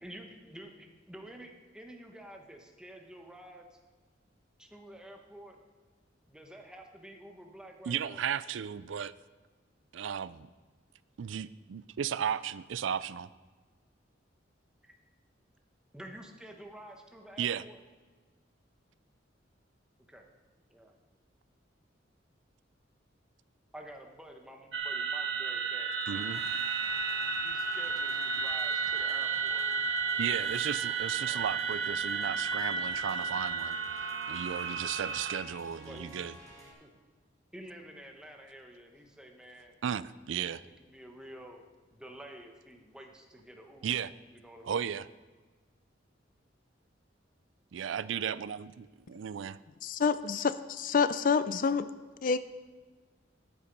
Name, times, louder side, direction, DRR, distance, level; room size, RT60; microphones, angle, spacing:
voice 1, 0.0-3.6 4.6-5.6 6.3-8.2 14.9-15.0 15.9-17.8 20.1-20.2 20.7-20.9 23.7-25.9 27.4-29.7 31.2-31.5 35.9-36.1 36.8-36.9 37.5-39.7 40.9-41.6 41.9-43.9 44.4-44.8, right 1 dB, 5° right, 2 dB, 1.2 m, -49 dB
voice 2, 7.9-9.1 9.9-10.5 11.2-13.3 17.4-17.7 26.1-26.4 30.2-33.8 34.3-36.4 39.8-40.6 43.8-44.1 44.6-45.1 47.7-48.7 49.1-49.6, right 8 dB, 90° right, 17 dB, 0.4 m, -35 dB
sound 1, 24.7-35.4, right 5 dB, 65° right, 1.0 m, -32 dB
sound 2, 26.1-36.7, equal, 20° right, 2.9 m, -52 dB
voice 3, 49.8-51.9 52.2-52.4, left 5 dB, 45° left, 14 dB, 0.4 m, -27 dB
13.5 x 7.2 x 5.3 m, 1.4 s
head